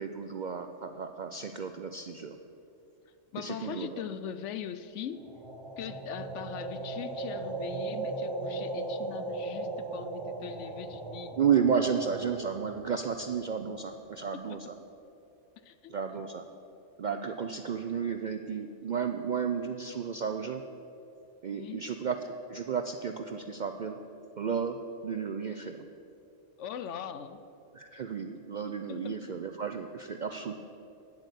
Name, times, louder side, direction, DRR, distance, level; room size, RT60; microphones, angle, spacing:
voice 1, 0.0-2.4 3.4-4.0 11.4-14.8 15.9-16.5 17.0-20.6 21.4-24.0 24.4-24.8 25.0-25.8 27.7-30.5, right 7 dB, 60° right, 6 dB, 0.5 m, -32 dB
voice 2, 3.3-5.4 5.8-11.4 14.3-14.6 15.6-15.9 21.5-21.8 26.6-27.4 28.7-29.4, left 8 dB, 70° left, 12 dB, 0.9 m, -41 dB
sound 1, 5.3-13.3, right 2 dB, 25° right, 0.7 m, -37 dB
9.8 x 7.9 x 8.1 m, 2.7 s
omnidirectional pair, 1.3 m